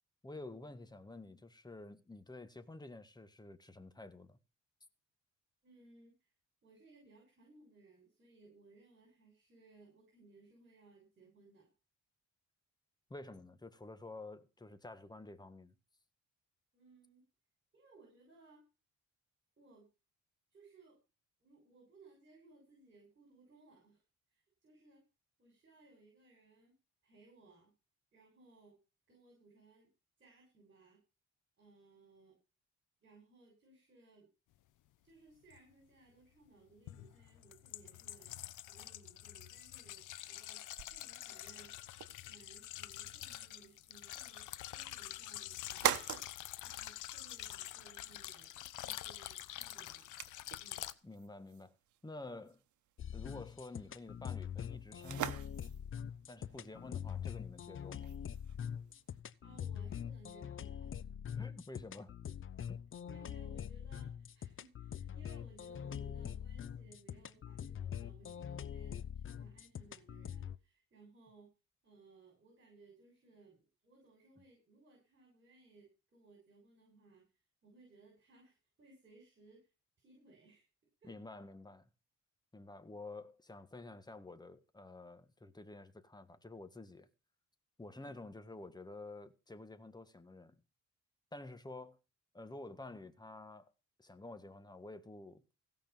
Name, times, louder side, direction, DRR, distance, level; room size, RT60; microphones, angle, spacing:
voice 1, 0.2-4.4 13.1-15.7 51.0-51.7 52.0-52.6 53.1-55.4 56.3-58.1 61.4-62.1 62.7-62.8 81.0-81.9 82.5-87.1 87.8-90.6 91.3-92.0 92.3-93.7 94.0-95.4, left 2 dB, 15° left, 1.5 m, -50 dB
voice 2, 5.6-6.3 6.6-11.7 16.7-17.2 17.7-18.6 19.6-19.9 20.5-21.0 21.4-24.0 24.3-25.0 25.4-26.7 27.0-27.7 28.1-28.8 29.1-29.9 30.2-31.0 31.6-32.4 33.0-34.3 35.0-38.3 38.7-41.7 42.2-46.0 46.5-48.5 48.8-50.1 50.6-50.9 59.4-60.9 61.3-61.6 63.0-71.5 71.8-77.2 77.6-79.7 80.0-80.7 81.0-81.2 87.9-88.3, right 3 dB, 40° right, 6.8 m, -63 dB
sound 1, 35.5-35.6 36.9-50.9, left 14 dB, 85° left, 0.9 m, -47 dB
sound 2, 40.8-59.2, right 12 dB, 75° right, 1.0 m, -45 dB
sound 3, 53.0-70.6, left 8 dB, 45° left, 0.7 m, -44 dB
16.5 x 5.7 x 7.3 m
cardioid pair, 90°, 30 cm